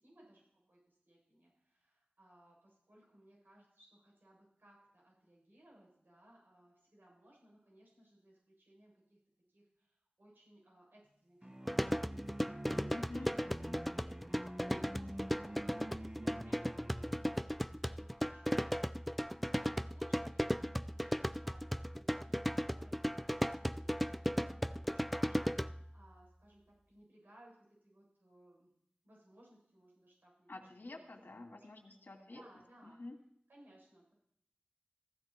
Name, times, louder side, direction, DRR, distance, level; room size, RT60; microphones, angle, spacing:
voice 1, 0.0-9.2 9.5-14.4 14.7-15.8 16.2-28.7 29.0-30.5 30.9-31.1 31.5-31.6 32.3-33.0 33.5-34.1, right 1 dB, 70° right, -4 dB, 7.5 m, -63 dB
sound 1, 11.4-17.3, right 1 dB, 20° right, 1.3 m, -48 dB
sound 2, 11.7-26.0, equal, ahead, 0.4 m, -36 dB
voice 2, 12.9-13.8 30.5-32.4 32.8-33.2, left 2 dB, 65° left, 2 dB, 2.6 m, -49 dB
15.5 x 13.5 x 4.5 m, 0.71 s
wide cardioid pair, 45°, 4 cm